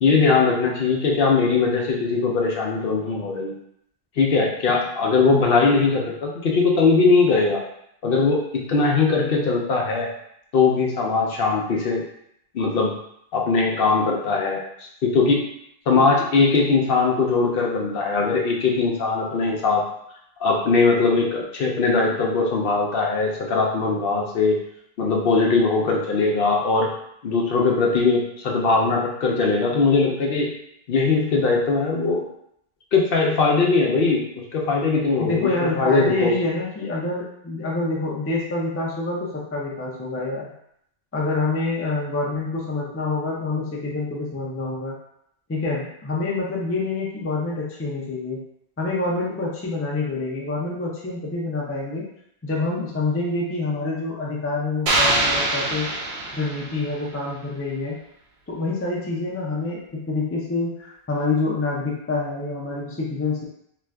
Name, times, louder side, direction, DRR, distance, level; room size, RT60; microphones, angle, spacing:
voice 1, 0.0-3.6 4.2-7.6 8.0-10.1 10.5-12.0 12.5-12.9 13.3-14.6 15.0-15.4 15.9-19.8 20.4-24.6 25.0-26.9 27.2-30.5 30.9-32.2 32.9-34.2 34.5-36.3, left 4 dB, 65° left, -1 dB, 0.8 m, -20 dB
voice 2, 35.2-40.5 41.1-44.9 45.5-48.4 48.8-52.0 52.4-55.9 56.3-58.0 58.5-63.4, left 3 dB, 20° left, -3 dB, 0.3 m, -26 dB
sound 1, 54.9-57.0, right 2 dB, 55° right, 0.7 m, -23 dB
2.5 x 2.4 x 3.3 m, 0.74 s
omnidirectional pair, 1.1 m